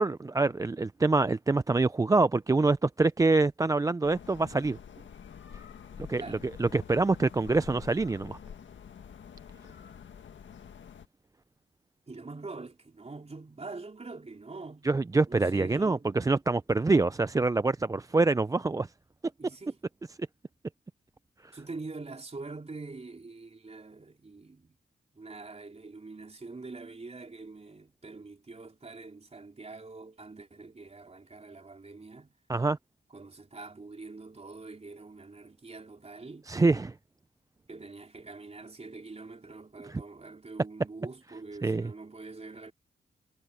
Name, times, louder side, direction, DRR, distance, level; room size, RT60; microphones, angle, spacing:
voice 1, 0.0-4.8 6.1-8.4 14.8-18.9 32.5-32.8 36.5-36.9 39.9-40.0 41.6-41.9, right 3 dB, 20° right, 0.4 m, -25 dB
sound 1, 4.0-11.1, left 7 dB, 85° left, 1.7 m, -47 dB
voice 2, 12.1-14.9 15.3-16.2 19.4-19.8 21.5-24.8 25.1-32.3 33.1-36.5 37.7-42.7, right 3 dB, 35° right, 3.6 m, -44 dB
cardioid pair, 75°, 19 cm